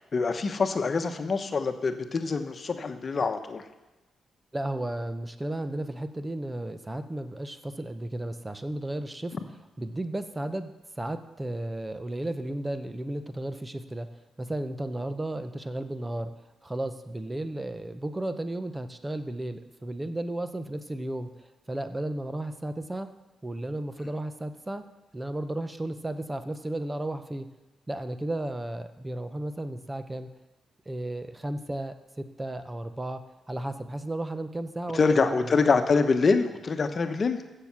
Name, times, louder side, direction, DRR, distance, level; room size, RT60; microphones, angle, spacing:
voice 1, 0.1-3.6 34.9-37.4, left 4 dB, 50° left, 8 dB, 1.1 m, -25 dB
voice 2, 4.5-9.4 9.8-14.1 14.4-16.3 16.6-23.1 23.4-24.8 25.1-27.5 27.9-30.3 30.8-33.2 33.5-35.6, right 1 dB, 20° right, 10 dB, 1.0 m, -34 dB
15.0 x 6.7 x 6.0 m, 1.1 s
supercardioid pair, 50°, 0 cm